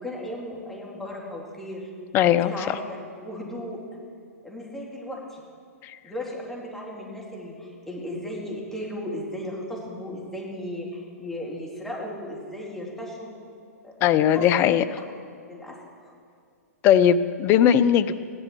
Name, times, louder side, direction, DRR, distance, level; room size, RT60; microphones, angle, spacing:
voice 1, 0.0-1.9 2.3-3.8 4.4-5.4 6.0-13.3 13.8-14.4 15.5-15.8, left 1 dB, 5° left, -3 dB, 2.5 m, -36 dB
voice 2, 2.1-2.8 5.8-6.0 14.0-14.8 16.8-18.1, left 9 dB, 25° left, 13 dB, 0.5 m, -19 dB
15.5 x 11.0 x 4.6 m, 2.3 s
figure-of-eight pair, 115°, 9 cm